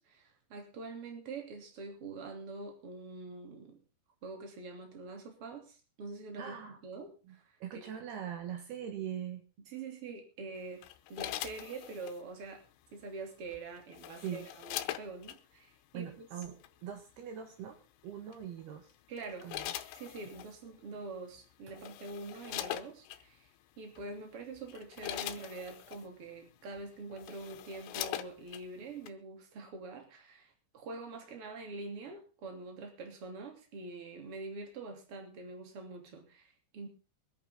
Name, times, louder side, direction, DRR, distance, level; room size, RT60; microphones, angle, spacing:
voice 1, 0.0-3.8 4.2-7.4 9.7-12.6 12.9-16.3 19.1-19.5 19.9-23.5 23.8-36.9, right 3 dB, 35° right, 3 dB, 3.4 m, -45 dB
voice 2, 6.4-6.8 7.3-7.4 7.6-9.4 14.2-14.5 15.9-17.8 18.0-18.9 19.4-19.7, right 9 dB, 70° right, 5 dB, 3.3 m, -41 dB
sound 1, 10.8-12.2 13.5-15.4 16.4-16.7 18.3-18.6 19.2-20.5 21.3-21.4 21.7-23.2 24.0-24.1 24.6-26.1 26.7-26.8 27.1-28.7 29.1-29.2, left 14 dB, 85° left, 3.1 m, -41 dB
23.5 x 9.3 x 3.7 m, 0.34 s
omnidirectional pair, 5.0 m